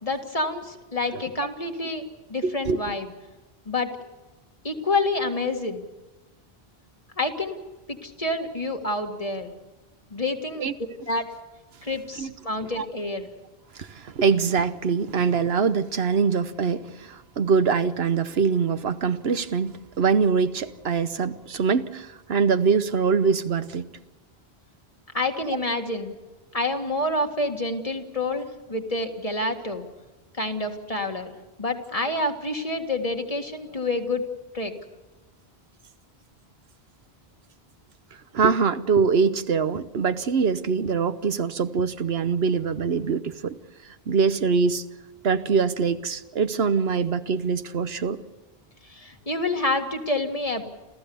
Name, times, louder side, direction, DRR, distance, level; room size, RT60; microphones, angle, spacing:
voice 1, 0.0-2.0 2.3-3.1 3.7-4.1 4.6-5.8 7.2-7.6 7.9-9.5 10.1-10.7 11.1-11.2 11.8-13.3 25.1-26.1 26.5-29.9 30.3-31.3 31.6-34.2 34.5-34.7 48.9-50.6, left 2 dB, 35° left, 1.9 m, -28 dB
voice 2, 2.4-2.9 10.6-10.7 12.2-12.3 12.8-12.9 13.8-23.9 38.3-43.6 44.1-44.8 45.2-48.2, right 5 dB, 75° right, 1.1 m, -23 dB
28.0 x 14.5 x 7.0 m
omnidirectional pair, 1.0 m